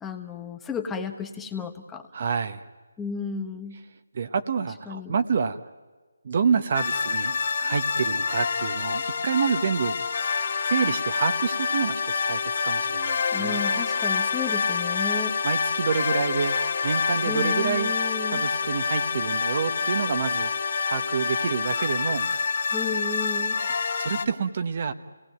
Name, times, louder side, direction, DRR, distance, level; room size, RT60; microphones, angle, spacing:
voice 1, 0.0-2.1 3.0-3.8 4.9-5.1 13.3-15.4 17.2-18.5 22.7-23.6, left 5 dB, 10° left, 5 dB, 1.3 m, -33 dB
voice 2, 2.1-2.6 4.1-5.6 6.2-10.1 10.6-13.6 15.4-16.6 16.8-17.9 18.3-22.3 24.0-24.9, right 6 dB, 45° right, 9 dB, 1.1 m, -28 dB
sound 1, 6.7-24.2, left 5 dB, 45° left, 1.3 m, -27 dB
28.0 x 19.0 x 9.3 m, 1.3 s
figure-of-eight pair, 160°, 0 cm